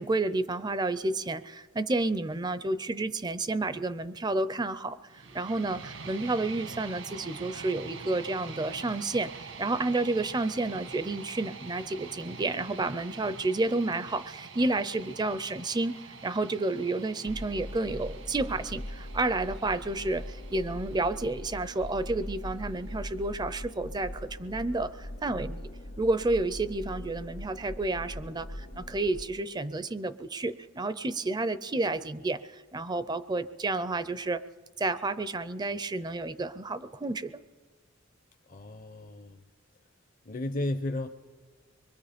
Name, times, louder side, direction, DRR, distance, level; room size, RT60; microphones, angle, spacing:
voice 1, 0.0-5.0 5.3-16.0 16.2-25.7 26.0-34.4 34.8-37.4, right 2 dB, 20° right, 14 dB, 0.5 m, -30 dB
sound 1, 5.1-23.1, right 5 dB, 80° right, 1.6 m, -46 dB
sound 2, 17.3-29.2, left 1 dB, 80° left, 1.8 m, -41 dB
voice 2, 38.5-39.4 40.2-41.1, left 1 dB, 45° left, 7 dB, 0.7 m, -33 dB
24.5 x 22.5 x 5.1 m, 1.4 s
head